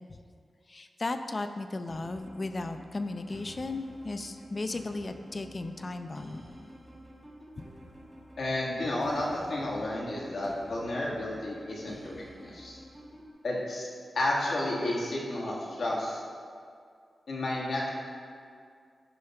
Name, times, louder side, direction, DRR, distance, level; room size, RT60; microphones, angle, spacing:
voice 1, 0.7-6.4, left 2 dB, 35° left, 8 dB, 0.4 m, -35 dB
sound 1, 1.9-13.3, equal, 10° right, 1.4 m, -50 dB
voice 2, 8.4-12.8 13.4-13.9 14.1-16.2 17.3-17.9, left 1 dB, 70° left, -4 dB, 1.5 m, -31 dB
10.0 x 3.3 x 5.7 m, 2.2 s
wide cardioid pair, 145°, 0 cm